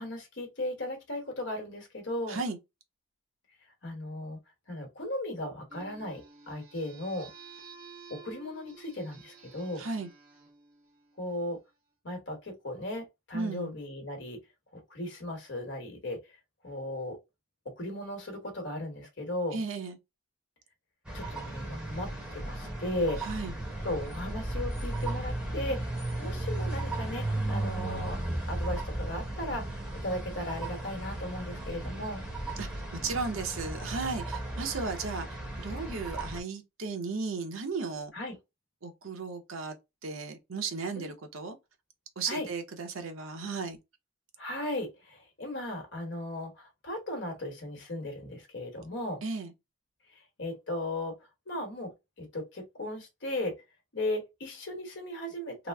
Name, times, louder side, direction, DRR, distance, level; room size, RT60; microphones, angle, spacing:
voice 1, 0.0-2.4 3.8-4.4 4.7-7.3 8.1-9.9 11.2-11.6 12.0-14.4 14.7-16.2 16.6-17.2 17.6-19.6 21.1-23.2 23.8-25.9 26.2-28.2 28.5-32.3 35.9-36.0 38.1-38.4 40.9-41.1 42.3-42.5 44.4-49.2 50.4-51.2 51.5-51.9 52.2-53.6 53.9-55.7, left 1 dB, 60° left, 1.2 m, -36 dB
sound 1, 5.7-11.7, right 5 dB, 45° right, 1.1 m, -52 dB
voice 2, 9.8-10.1 13.3-13.7 19.5-20.0 23.2-23.5 32.6-38.1 38.8-39.7 40.0-41.6 42.2-43.8 49.2-49.5, right 4 dB, 80° right, 0.8 m, -35 dB
sound 2, 21.0-36.4, right 1 dB, 5° right, 0.9 m, -35 dB
3.0 x 2.0 x 3.4 m
head